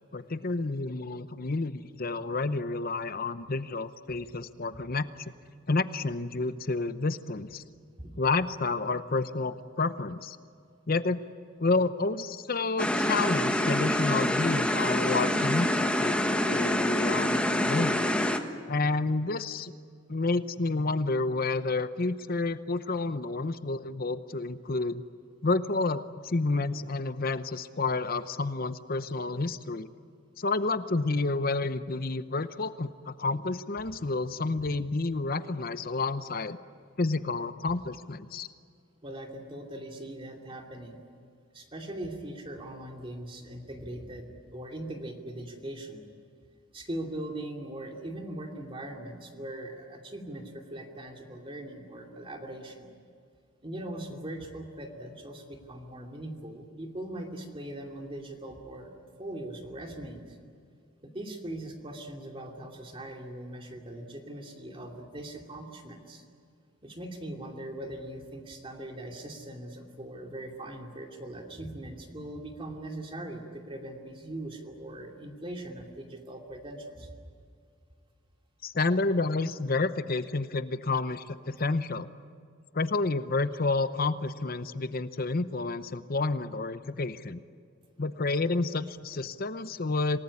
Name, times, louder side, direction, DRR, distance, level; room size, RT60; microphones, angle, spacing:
voice 1, 0.1-5.3 5.7-7.6 8.2-10.4 10.9-11.2 11.6-18.0 18.7-19.7 20.1-25.0 25.4-29.9 30.4-36.6 37.0-38.5 78.6-82.1 82.7-87.4 88.0-90.2, left 3 dB, 45° left, 12 dB, 0.8 m, -30 dB
sound 1, 12.8-18.4, left 1 dB, 5° left, 1.4 m, -26 dB
voice 2, 39.0-41.0 41.5-46.0 46.7-52.9 53.6-58.9 59.2-60.4 61.0-66.2 66.8-77.1, right 1 dB, 25° right, 2 dB, 2.6 m, -40 dB
27.5 x 18.5 x 9.9 m, 2.2 s
head